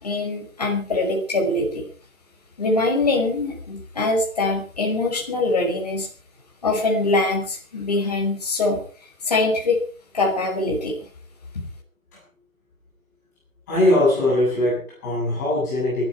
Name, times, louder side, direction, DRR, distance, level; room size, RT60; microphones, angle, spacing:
voice 1, 0.0-1.8 2.6-6.1 6.6-8.8 9.2-9.8 10.1-11.0, left 2 dB, 30° left, 0 dB, 5.2 m, -23 dB
voice 2, 13.7-16.1, left 1 dB, 10° left, -8 dB, 8.0 m, -21 dB
22.0 x 13.0 x 4.7 m, 0.43 s
hypercardioid pair, 180°, 41 cm